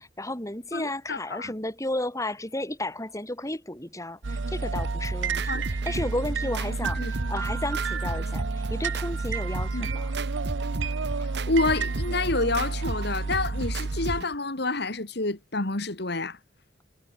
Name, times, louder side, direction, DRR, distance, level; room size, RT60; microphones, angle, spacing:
voice 1, 0.0-10.1, left 1 dB, 15° left, 4.4 m, -33 dB
voice 2, 0.7-1.5 5.5-5.7 7.0-7.1 9.7-9.9 11.2-16.4, left 2 dB, 60° left, 2.3 m, -28 dB
sound 1, 4.2-14.2, right 4 dB, 85° right, 0.8 m, -30 dB
sound 2, 4.7-14.3, right 2 dB, 60° right, 2.2 m, -37 dB
head